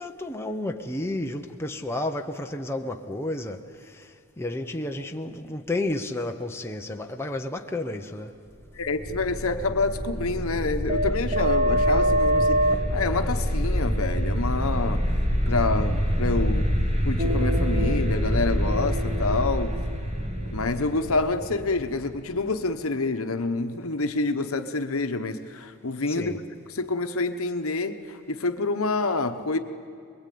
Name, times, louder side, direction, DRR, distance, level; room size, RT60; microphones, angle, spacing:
voice 1, 0.0-4.1 4.4-8.3 26.1-26.4, left 2 dB, 10° left, 0.8 m, -31 dB
voice 2, 8.7-12.6 12.9-15.0 15.5-16.7 17.0-19.8 20.5-26.4 26.7-29.6, left 3 dB, 70° left, 1.1 m, -27 dB
sound 1, 8.8-22.5, equal, 30° right, 1.7 m, -25 dB
24.5 x 21.5 x 8.6 m
head